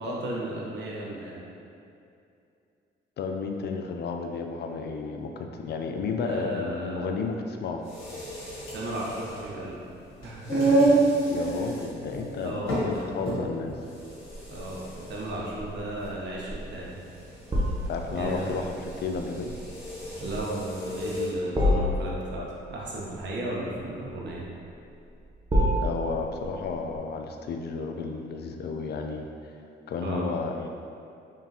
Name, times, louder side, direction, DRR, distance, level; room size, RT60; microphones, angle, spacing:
voice 1, 0.0-1.5 6.2-7.1 8.7-9.8 10.2-11.0 11.4-11.6 12.4-13.1 14.5-17.0 17.9-18.6 20.2-24.5 30.0-30.3, right 1 dB, 60° right, -4 dB, 0.9 m, -35 dB
voice 2, 3.2-7.8 11.3-13.8 17.9-19.6 25.8-29.6 29.9-30.7, left 4 dB, 55° left, 4 dB, 0.4 m, -32 dB
sound 1, 7.8-21.4, right 2 dB, 85° left, 1.4 m, -30 dB
sound 2, 14.3-27.0, equal, 20° right, 0.7 m, -31 dB
3.7 x 3.5 x 2.7 m, 2.6 s
cardioid pair, 90°, 20 cm